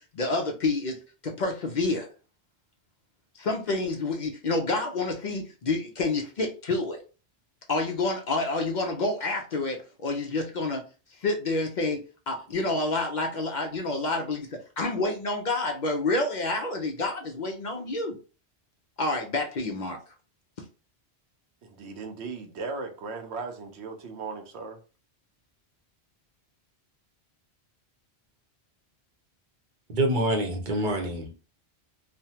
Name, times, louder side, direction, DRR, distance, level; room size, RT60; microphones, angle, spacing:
voice 1, 0.1-2.1 3.4-7.0 7.7-10.8 11.2-12.0 12.3-14.5 14.8-18.2 19.0-20.0, left 2 dB, 55° left, 0.6 m, -28 dB
voice 2, 21.6-24.8, right 4 dB, 85° right, 0.9 m, -37 dB
voice 3, 29.9-31.3, right 1 dB, 50° right, 0.8 m, -26 dB
3.2 x 2.1 x 2.8 m
omnidirectional pair, 1.1 m